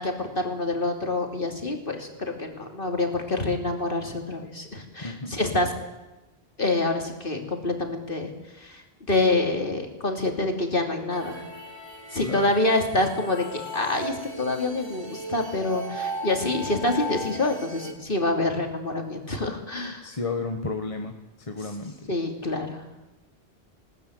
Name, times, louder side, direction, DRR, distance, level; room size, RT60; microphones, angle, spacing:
voice 1, 0.0-5.7 6.6-8.3 8.6-11.4 12.1-20.1 22.1-22.8, left 2 dB, 55° left, 4 dB, 3.3 m, -27 dB
voice 2, 5.0-5.4 12.2-12.6 20.0-22.1, left 3 dB, 30° left, 4 dB, 1.6 m, -33 dB
sound 1, 11.1-17.9, equal, 25° right, 2.8 m, -37 dB
20.5 x 18.0 x 9.5 m, 1.1 s
omnidirectional pair, 1.1 m